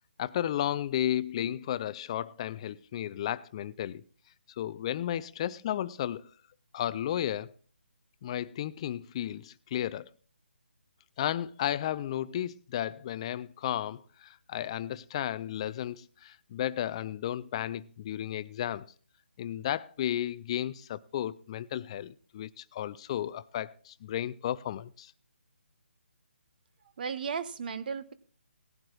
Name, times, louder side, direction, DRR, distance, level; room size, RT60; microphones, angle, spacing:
voice 1, 0.2-4.0 4.6-6.3 6.7-7.5 8.2-10.1 11.2-18.9 19.4-25.1, left 11 dB, 30° left, 0.4 m, -33 dB
voice 2, 27.0-28.1, right 6 dB, 45° right, 1.0 m, -35 dB
18.5 x 11.5 x 2.4 m
figure-of-eight pair, 150°, 7 cm